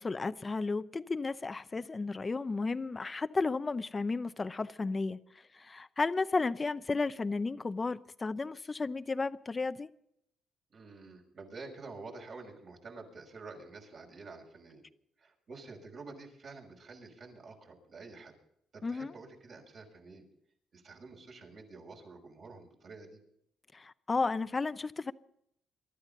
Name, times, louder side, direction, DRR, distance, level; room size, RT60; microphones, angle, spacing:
voice 1, 0.0-5.2 5.5-9.9 18.8-19.1 23.7-25.1, left 3 dB, 30° left, 0.7 m, -33 dB
voice 2, 10.7-14.8 15.2-18.3 18.7-20.3 20.7-23.2, right 3 dB, 55° right, 5.7 m, -49 dB
23.5 x 13.0 x 3.9 m
cardioid pair, 90°, 0 cm